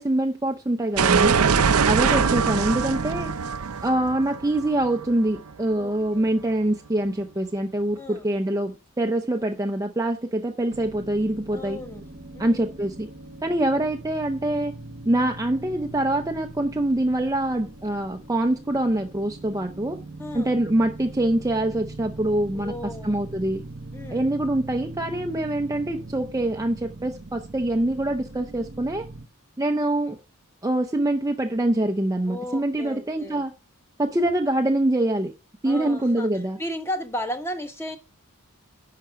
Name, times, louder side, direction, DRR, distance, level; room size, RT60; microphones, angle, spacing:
voice 1, 0.0-1.4 1.8-3.3 3.8-11.8 12.4-13.1 13.4-14.7 15.1-20.0 20.3-23.6 24.1-29.1 29.6-30.2 30.6-33.5 34.0-35.3 35.6-36.6, right 1 dB, 15° right, 0.6 m, -24 dB
sound 1, 1.0-5.7, right 6 dB, 75° right, 0.6 m, -22 dB
voice 2, 1.4-1.9 5.7-6.3 8.0-8.3 11.5-12.1 12.3-12.6 20.2-20.6 22.5-23.1 23.9-24.3 32.3-33.4 35.6-36.3 36.6-38.0, left 1 dB, 10° left, 1.4 m, -35 dB
sound 2, 10.7-29.2, right 2 dB, 45° right, 1.0 m, -41 dB
10.5 x 6.6 x 4.8 m
head